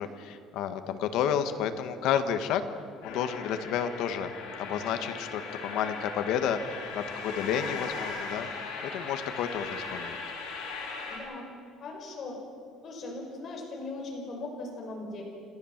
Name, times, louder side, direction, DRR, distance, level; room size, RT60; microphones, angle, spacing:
voice 1, 0.0-2.6 3.0-4.3 4.6-8.5 8.8-10.2, left 8 dB, 60° left, 8 dB, 1.6 m, -31 dB
sound 1, 3.0-11.2, left 4 dB, 80° left, 8.0 m, -38 dB
voice 2, 11.1-11.5 11.8-12.3 12.8-15.2, left 2 dB, 35° left, 0 dB, 5.7 m, -39 dB
29.0 x 14.5 x 7.5 m, 2.3 s
cardioid pair, 170°, 0 cm